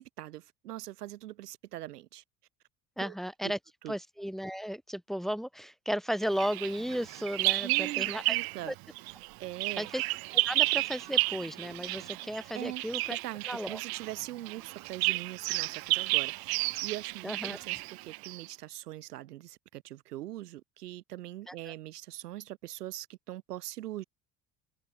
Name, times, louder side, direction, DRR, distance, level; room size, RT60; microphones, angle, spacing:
voice 1, 0.0-2.2 3.0-3.1 3.4-3.5 3.8-3.9 7.6-8.7 9.4-9.9 12.5-12.8 13.1-24.0, right 14 dB, 80° right, 1.2 m, -42 dB
voice 2, 3.0-3.6 3.9-8.4 8.7-8.8 9.8-10.0 10.3-13.2 13.5-13.8 17.2-17.6 21.5-21.7, equal, ahead, 1.8 m, -34 dB
Bird vocalization bird call bird song, 6.4-8.7 9.0-18.5, right 23 dB, 50° right, 0.7 m, -32 dB
open air
hypercardioid pair, 65°, 46 cm